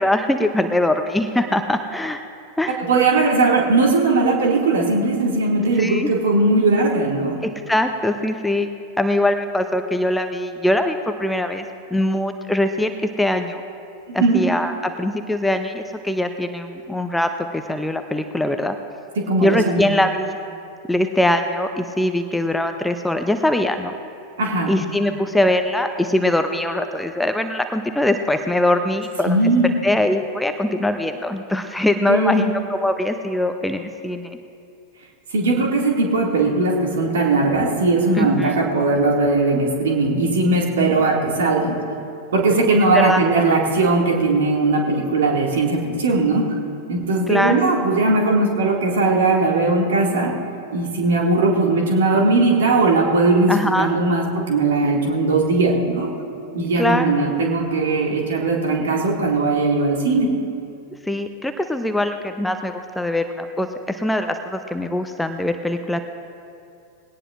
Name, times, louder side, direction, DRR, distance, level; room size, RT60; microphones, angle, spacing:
voice 1, 0.0-2.2 2.6-2.8 5.8-6.1 7.4-8.7 9.0-11.7 11.9-13.6 14.1-18.8 19.4-20.4 20.9-23.9 24.7-29.5 29.8-34.4 38.2-38.6 42.9-43.2 47.3-47.5 53.5-53.9 56.8-57.1 61.1-66.0, left 1 dB, 5° left, 7 dB, 0.6 m, -22 dB
voice 2, 2.7-7.4 14.1-14.4 19.2-19.9 24.4-24.8 29.2-29.8 32.1-32.5 35.3-41.8 42.3-46.6 46.9-50.4 50.7-56.1 56.5-60.3, right 3 dB, 60° right, 0 dB, 2.1 m, -19 dB
21.0 x 17.5 x 2.5 m, 2.5 s
figure-of-eight pair, 90°, 0 cm